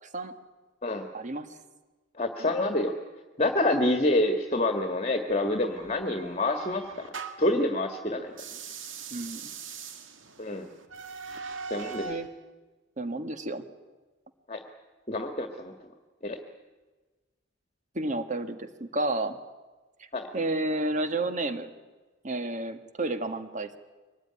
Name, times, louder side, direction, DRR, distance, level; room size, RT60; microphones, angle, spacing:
voice 1, 1.1-1.5 2.4-2.5 9.1-9.5 12.0-12.3 13.0-13.6 18.0-19.4 20.0-20.1 20.3-21.7 22.2-23.8, right 2 dB, 40° right, 9 dB, 1.7 m, -31 dB
voice 2, 2.2-2.9 3.4-8.3 10.4-10.7 11.7-12.1 14.5-14.6 15.1-15.7 16.2-16.4 20.1-20.3, left 1 dB, 35° left, 5 dB, 1.7 m, -27 dB
sound 1, 5.8-7.6 8.3-12.3, right 5 dB, 85° right, 2.1 m, -41 dB
23.5 x 19.5 x 9.8 m, 1.3 s
head